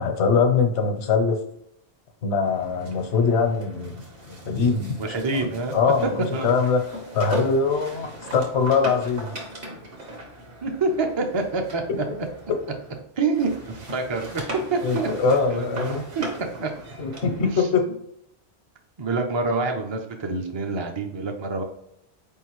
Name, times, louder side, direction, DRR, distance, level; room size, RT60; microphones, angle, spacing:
voice 1, 0.0-1.4 2.2-6.8 7.1-9.3 11.9-12.0 14.8-16.0 17.0-17.8, left 5 dB, 85° left, 5 dB, 1.1 m, -23 dB
sound 1, 2.4-13.0 13.3-17.7, right 1 dB, 60° right, 1.3 m, -39 dB
voice 2, 5.0-5.8 6.3-6.5 10.6-11.8 13.2-14.4 14.7-15.1 15.5-16.2 16.6-16.7 17.4-17.7 19.0-21.6, right 3 dB, 40° right, 3 dB, 0.4 m, -26 dB
4.5 x 3.6 x 3.0 m, 0.75 s
omnidirectional pair, 1.1 m